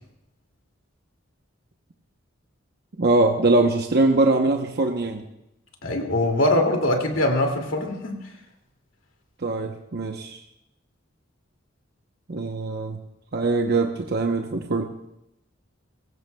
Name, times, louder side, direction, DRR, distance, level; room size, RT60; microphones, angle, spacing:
voice 1, 3.0-5.2 9.4-10.4 12.3-13.0 13.3-14.8, right 2 dB, 55° right, 3 dB, 0.9 m, -22 dB
voice 2, 5.8-8.1, left 1 dB, 80° left, 2 dB, 2.5 m, -22 dB
23.5 x 16.0 x 2.3 m, 0.86 s
head